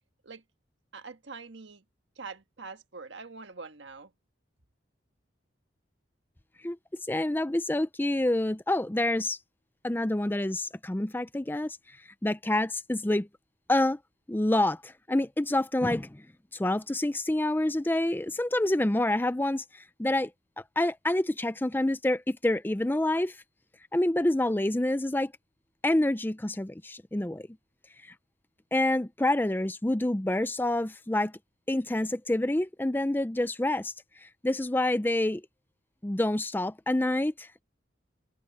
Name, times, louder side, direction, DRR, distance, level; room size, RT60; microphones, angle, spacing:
voice 1, 0.9-1.8 2.1-4.1, right 4 dB, 70° right, 1.6 m, -44 dB
voice 2, 7.1-9.4 9.8-11.8 12.2-13.3 13.7-14.0 14.3-16.2 16.5-20.3 20.8-23.4 23.9-25.3 25.8-27.5 28.7-31.3 31.7-33.9 34.2-35.4 36.0-37.6, left 1 dB, 10° left, 0.5 m, -27 dB
head